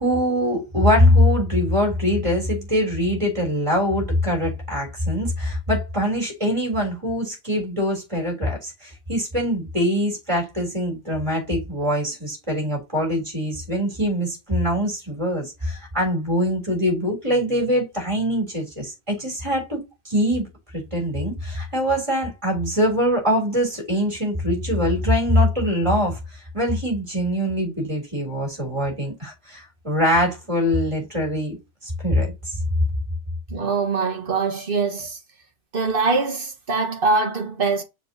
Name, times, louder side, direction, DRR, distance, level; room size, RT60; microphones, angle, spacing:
voice 1, 0.0-20.5 20.7-31.6 31.8-32.6, equal, 25° right, 3.5 m, -23 dB
voice 2, 33.5-35.2 35.7-37.8, right 4 dB, 50° right, 1.7 m, -23 dB
7.0 x 4.9 x 2.8 m
omnidirectional pair, 1.2 m